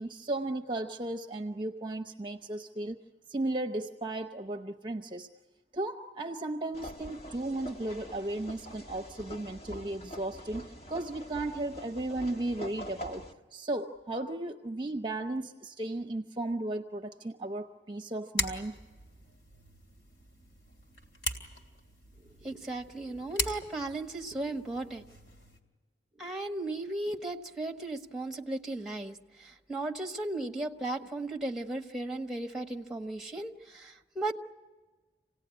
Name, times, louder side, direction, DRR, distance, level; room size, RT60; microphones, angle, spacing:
voice 1, 0.0-3.0 3.3-5.3 5.7-13.2 13.5-18.8, right 2 dB, 30° right, 5 dB, 0.8 m, -35 dB
sound 1, 6.7-13.3, equal, 35° left, 1.5 m, -45 dB
sound 2, 18.4-25.6, left 1 dB, 60° left, 3.0 m, -40 dB
voice 2, 22.4-25.0 26.2-34.3, right 2 dB, 5° right, 4 dB, 1.3 m, -36 dB
27.5 x 18.0 x 9.7 m, 1.3 s
head